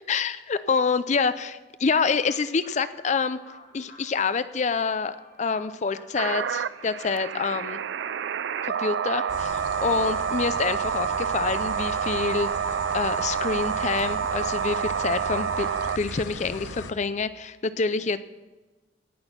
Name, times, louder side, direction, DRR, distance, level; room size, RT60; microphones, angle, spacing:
voice 1, 0.1-3.4 3.7-7.8 8.6-15.7 16.0-18.2, left 5 dB, 40° left, 13 dB, 0.4 m, -27 dB
sound 1, 2.2-15.1, left 2 dB, 60° left, 5.6 m, -52 dB
sound 2, 6.2-16.2, right 7 dB, 70° right, 0.4 m, -28 dB
sound 3, 9.3-16.9, left 3 dB, 85° left, 0.9 m, -39 dB
18.0 x 6.2 x 7.3 m, 1.2 s
head